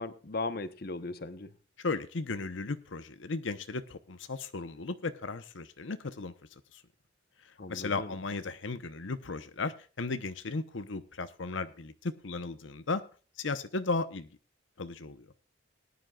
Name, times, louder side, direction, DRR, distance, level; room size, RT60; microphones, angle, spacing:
voice 1, 0.0-1.5 7.6-8.1, left 3 dB, 50° left, 11 dB, 0.9 m, -37 dB
voice 2, 1.8-6.3 6.7-6.8 7.4-13.0 13.4-14.3 14.8-15.3, left 3 dB, 80° left, 10 dB, 0.9 m, -35 dB
20.0 x 10.5 x 2.4 m, 0.36 s
head